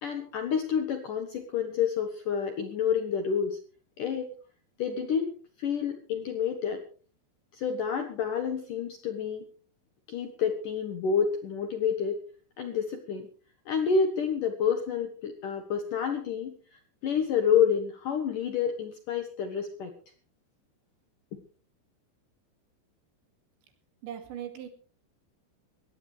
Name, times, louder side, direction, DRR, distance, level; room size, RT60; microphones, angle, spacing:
voice 1, 0.0-3.6 4.0-4.3 4.8-6.8 7.5-9.5 10.1-12.2 12.6-13.3 13.7-19.9, left 7 dB, 65° left, 6 dB, 2.2 m, -29 dB
voice 2, 24.0-24.7, right 10 dB, 70° right, 6 dB, 4.6 m, -39 dB
20.5 x 16.0 x 3.4 m, 0.40 s
omnidirectional pair, 5.6 m